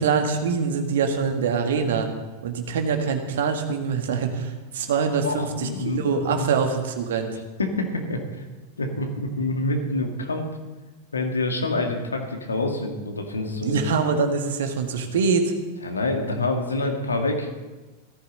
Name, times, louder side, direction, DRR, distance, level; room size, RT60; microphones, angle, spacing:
voice 1, 0.0-2.1 2.4-7.4 13.6-15.5, right 5 dB, 60° right, 5 dB, 1.8 m, -24 dB
voice 2, 5.2-6.5 7.6-8.4 8.8-10.5 11.1-13.8 15.8-17.5, left 2 dB, 75° left, 3 dB, 2.0 m, -27 dB
17.5 x 14.0 x 4.1 m, 1.2 s
figure-of-eight pair, 90°, 0 cm